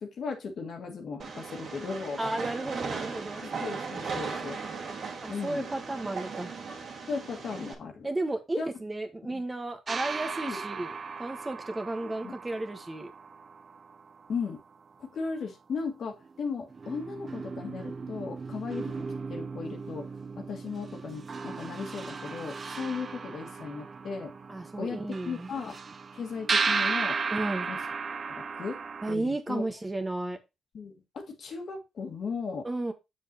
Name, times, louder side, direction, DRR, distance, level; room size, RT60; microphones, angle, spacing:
voice 1, 0.0-2.2 3.4-4.6 5.3-5.7 7.1-8.1 8.6-8.7 9.3-9.4 10.5-10.6 12.2-12.3 14.3-14.6 15.0-18.9 19.3-20.1 20.4-24.3 24.8-25.8 26.1-27.2 27.7-27.8 28.3-28.8 29.1-29.6 30.7-32.7, left 5 dB, 55° left, 3 dB, 1.9 m, -36 dB
Train, 1.2-7.7, right 5 dB, 55° right, 2.0 m, -37 dB
voice 2, 2.2-3.4 5.2-6.5 8.0-10.9 11.2-13.1 24.5-25.6 27.3-27.7 29.0-30.4 32.6-32.9, right 2 dB, 20° right, 6 dB, 1.3 m, -33 dB
sound 1, 9.9-14.7 16.2-16.3 16.7-29.1, right 4 dB, 40° right, 0.6 m, -35 dB
7.1 x 6.9 x 2.9 m, 0.23 s
cardioid pair, 90°, 0 cm